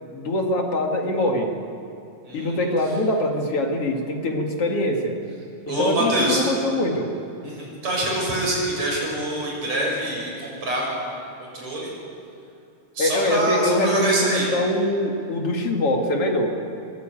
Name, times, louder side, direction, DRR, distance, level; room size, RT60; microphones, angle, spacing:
voice 1, 0.0-1.5 2.3-5.2 5.7-7.1 13.0-16.5, left 1 dB, 50° left, 2 dB, 3.0 m, -23 dB
voice 2, 2.2-2.6 5.7-6.4 7.4-11.1 11.4-11.9 12.9-14.5, right 1 dB, 55° right, -2 dB, 8.3 m, -25 dB
23.5 x 21.5 x 9.1 m, 2.6 s
omnidirectional pair, 3.6 m